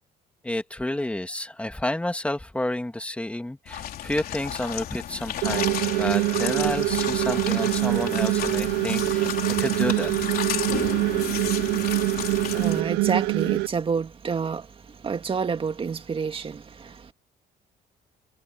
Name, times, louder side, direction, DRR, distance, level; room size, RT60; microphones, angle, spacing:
voice 1, 0.4-10.1, left 1 dB, 5° left, 2.3 m, -30 dB
sound 1, 3.7-12.8, left 11 dB, 60° left, 3.9 m, -32 dB
sound 2, 5.4-13.7, right 22 dB, 85° right, 0.4 m, -24 dB
voice 2, 10.6-17.1, right 5 dB, 30° right, 2.4 m, -30 dB
cardioid pair, 110°, 17 cm